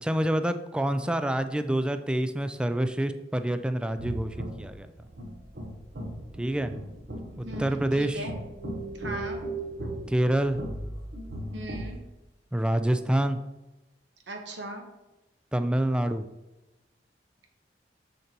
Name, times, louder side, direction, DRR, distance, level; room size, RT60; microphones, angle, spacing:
voice 1, 0.0-4.9 6.4-6.7 7.4-8.3 10.1-10.6 12.5-13.4 15.5-16.2, right 1 dB, 5° right, 9 dB, 0.3 m, -27 dB
sound 1, 3.9-12.0, right 1 dB, 60° right, 1.0 m, -37 dB
voice 2, 7.3-8.4 9.0-9.4 11.5-12.0 14.3-14.8, right 1 dB, 85° right, 3 dB, 1.2 m, -38 dB
6.7 x 6.5 x 2.9 m, 1.0 s
head